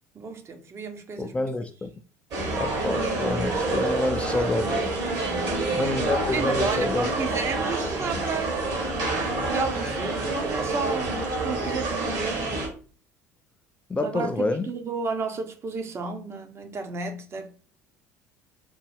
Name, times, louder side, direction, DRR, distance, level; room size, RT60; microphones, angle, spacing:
voice 1, 0.1-1.4 5.3-5.7 6.3-8.9 9.5-12.5 14.0-17.6, right 4 dB, 30° right, 0.7 m, -32 dB
voice 2, 1.2-1.9 2.6-4.8 5.7-7.1 13.9-14.7, left 2 dB, 15° left, 0.3 m, -27 dB
sound 1, 2.3-12.7, right 2 dB, 45° right, 1.4 m, -27 dB
3.8 x 2.1 x 3.4 m
figure-of-eight pair, 60°, 9 cm